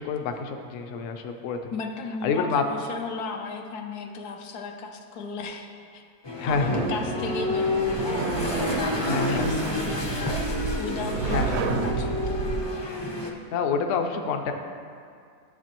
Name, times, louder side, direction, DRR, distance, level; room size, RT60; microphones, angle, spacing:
voice 1, 0.0-1.6 2.2-2.6 6.4-6.8 8.3-8.5 9.1-9.6 11.3-11.6 13.5-14.5, left 5 dB, 65° left, 5 dB, 0.9 m, -27 dB
voice 2, 1.7-6.0 6.5-10.4 10.7-12.7, left 4 dB, 85° left, 3 dB, 1.2 m, -35 dB
sound 1, 6.2-13.3, left 2 dB, 35° left, 0.4 m, -30 dB
sound 2, 6.5-12.7, right 4 dB, 75° right, 1.0 m, -30 dB
12.0 x 6.7 x 2.9 m, 2.3 s
omnidirectional pair, 1.6 m